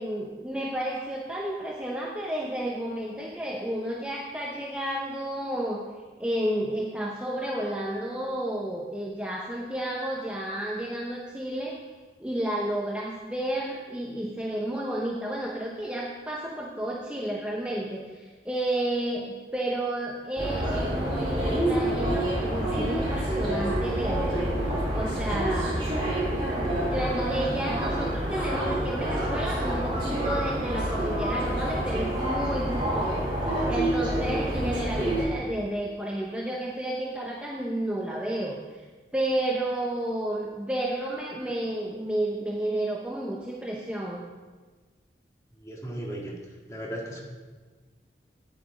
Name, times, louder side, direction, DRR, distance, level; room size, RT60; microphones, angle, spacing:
voice 1, 0.0-5.8 6.2-11.8 12.2-24.5 24.9-25.9 26.8-38.8 39.1-44.3, right 1 dB, 5° right, -3 dB, 0.8 m, -31 dB
sound 1, 20.4-35.2, right 1 dB, 30° right, 3.7 m, -27 dB
voice 2, 45.6-46.3 46.7-47.2, right 1 dB, 15° left, -3 dB, 1.9 m, -36 dB
9.9 x 7.8 x 4.9 m, 1.4 s
head